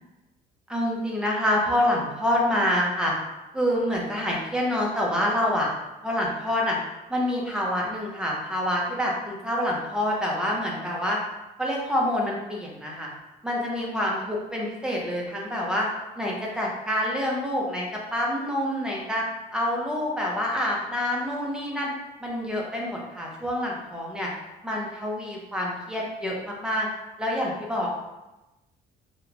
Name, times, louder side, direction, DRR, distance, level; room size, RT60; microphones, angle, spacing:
voice 1, 0.7-3.1 3.5-5.7 6.0-6.8 7.1-11.2 11.6-13.1 13.4-15.9 16.2-19.2 19.5-21.9 22.2-24.3 24.6-26.9 27.2-27.9, left 1 dB, 5° right, -3 dB, 0.6 m, -27 dB
2.9 x 2.1 x 2.5 m, 1.0 s
cardioid pair, 110°, 17 cm